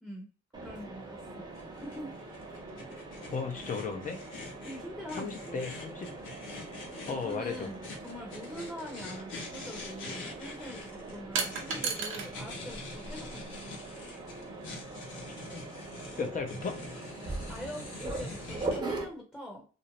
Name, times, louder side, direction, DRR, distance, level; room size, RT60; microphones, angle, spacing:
Mechanisms, 0.5-19.1, right 2 dB, 20° right, 0.8 m, -42 dB
voice 1, 0.6-2.1 4.6-5.6 7.1-13.7 17.5-19.6, equal, 5° left, -1 dB, 0.8 m, -44 dB
sound 1, 1.5-18.8, left 3 dB, 80° left, 0.9 m, -45 dB
voice 2, 3.3-4.2 5.1-6.2 7.1-7.7 16.2-16.8, left 4 dB, 40° left, 5 dB, 0.7 m, -35 dB
sound 2, 9.4-9.6 11.3-12.3 12.7-13.5, right 5 dB, 85° right, 0.6 m, -34 dB
2.5 x 2.0 x 2.9 m, 0.36 s
cardioid pair, 90°, 20 cm